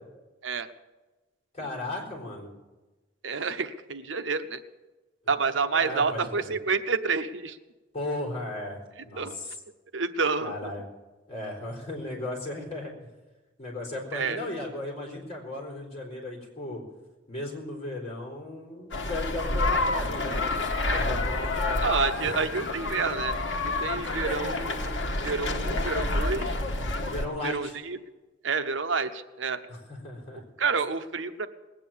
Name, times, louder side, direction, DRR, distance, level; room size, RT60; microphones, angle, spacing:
voice 1, 1.5-2.5 5.7-6.2 7.9-9.5 10.4-10.8 11.3-12.9 13.6-16.8 17.3-21.8 27.1-27.7 29.7-30.4, left 2 dB, 35° left, -1 dB, 4.3 m, -36 dB
voice 2, 3.2-4.6 5.3-7.6 9.2-9.4 9.9-10.7 14.1-14.4 21.8-26.6 27.4-28.0 28.4-29.6 30.6-31.5, right 4 dB, 85° right, 10 dB, 0.9 m, -29 dB
sound 1, 18.9-27.3, left 2 dB, 75° left, 1.4 m, -28 dB
20.0 x 9.1 x 7.3 m, 1.2 s
head